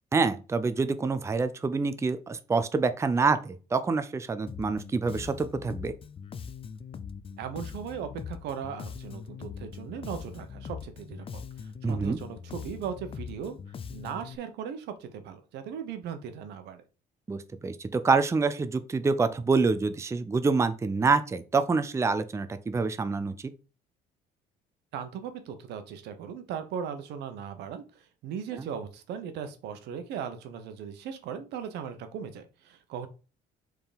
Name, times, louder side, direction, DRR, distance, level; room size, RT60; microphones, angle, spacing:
voice 1, 0.1-5.9 11.8-12.2 17.3-23.3 28.6-28.7, right 4 dB, 15° right, 0.5 m, -26 dB
Bass guitar, 4.5-14.4, left 6 dB, 35° left, 0.5 m, -41 dB
voice 2, 7.4-13.6 13.9-16.8 24.9-27.8 28.2-33.1, right 7 dB, 80° right, 1.0 m, -38 dB
4.8 x 3.8 x 5.1 m
cardioid pair, 110°, 17 cm